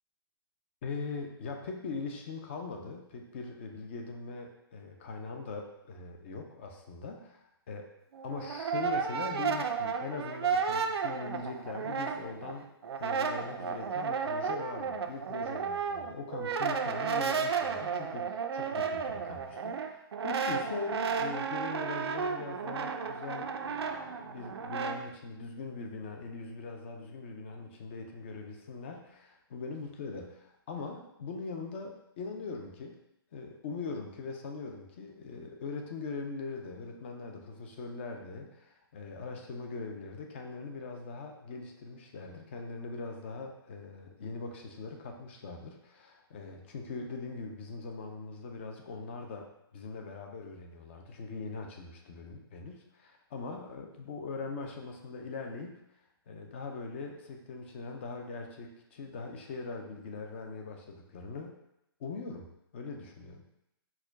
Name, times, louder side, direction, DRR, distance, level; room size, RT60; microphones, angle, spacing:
voice 1, 0.8-7.9 8.2-12.7 13.0-33.0 33.3-55.8 56.3-61.6 62.0-63.4, left 4 dB, 30° left, 3 dB, 0.4 m, -41 dB
Brass instrument, 8.1-12.5 12.8-25.0, right 6 dB, 85° right, 0.5 m, -33 dB
4.6 x 2.2 x 4.6 m, 0.83 s
hypercardioid pair, 170°, 13 cm